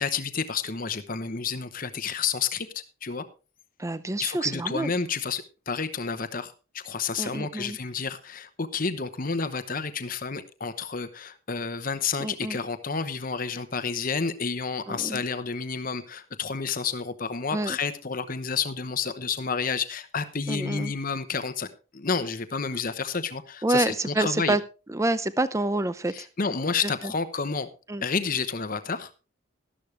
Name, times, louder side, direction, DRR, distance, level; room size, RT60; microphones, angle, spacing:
voice 1, 0.0-2.7 3.0-3.2 4.2-21.7 21.9-24.6 26.1-27.7 28.0-29.1, left 5 dB, 40° left, 11 dB, 0.9 m, -30 dB
voice 2, 3.8-4.9 7.2-7.8 12.2-12.6 14.9-15.2 17.5-17.8 20.5-20.9 23.6-24.6 24.9-26.3 26.8-27.1 27.9-28.0, right 2 dB, 15° right, 15 dB, 0.6 m, -27 dB
12.5 x 12.0 x 3.3 m, 0.34 s
head